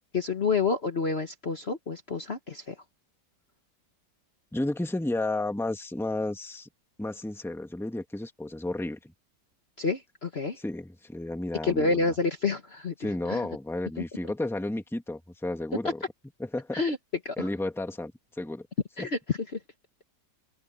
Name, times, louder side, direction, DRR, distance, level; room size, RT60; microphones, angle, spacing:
voice 1, 0.0-2.7 9.8-10.6 11.6-12.9 13.3-13.4 16.7-17.0 17.2-17.5 19.0-19.4, left 4 dB, 40° left, 1.4 m, -28 dB
voice 2, 4.5-6.7 7.0-9.1 10.6-12.1 13.0-16.0 16.4-16.8 17.4-18.1 18.4-18.7 19.0-19.1, left 2 dB, ahead, 1.6 m, -32 dB
open air
omnidirectional pair, 1.9 m